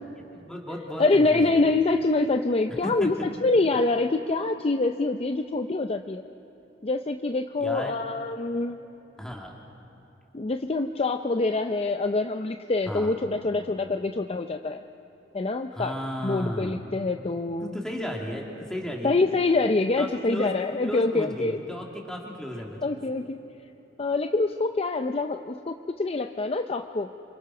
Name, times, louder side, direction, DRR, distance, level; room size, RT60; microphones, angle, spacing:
voice 1, 0.3-1.7 2.7-3.1 7.6-8.0 9.2-9.5 12.9-13.1 15.7-16.9 17.6-19.2 20.0-20.5 20.8-22.8, equal, 5° left, -1 dB, 2.8 m, -34 dB
voice 2, 1.0-6.2 6.8-8.8 10.3-14.8 15.3-15.9 16.2-17.8 19.0-21.6 22.8-23.4 24.0-27.1, left 3 dB, 30° left, 7 dB, 0.5 m, -25 dB
27.5 x 25.5 x 6.0 m, 3.0 s
head